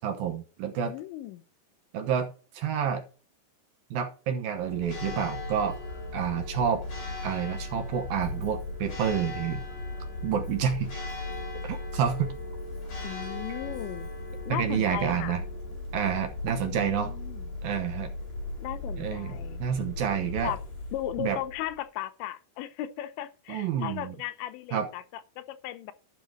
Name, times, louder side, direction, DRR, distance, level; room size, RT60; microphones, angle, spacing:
voice 1, 0.0-0.9 1.9-3.0 3.9-5.8 6.1-6.8 7.2-9.6 10.2-11.0 11.6-12.3 14.5-15.4 15.9-17.1 17.6-18.1 19.0-19.3 19.6-20.5 21.2-21.4 23.5-24.1 24.7-24.9, right 8 dB, 70° right, 2.4 m, -29 dB
voice 2, 0.9-1.4 13.0-14.1 14.5-15.4 16.6-17.6 18.6-19.6 20.4-20.6 20.9-25.9, left 13 dB, 90° left, 3.2 m, -36 dB
Church bell, 4.6-21.8, left 2 dB, 40° left, 3.9 m, -37 dB
12.0 x 5.7 x 4.8 m
omnidirectional pair, 5.0 m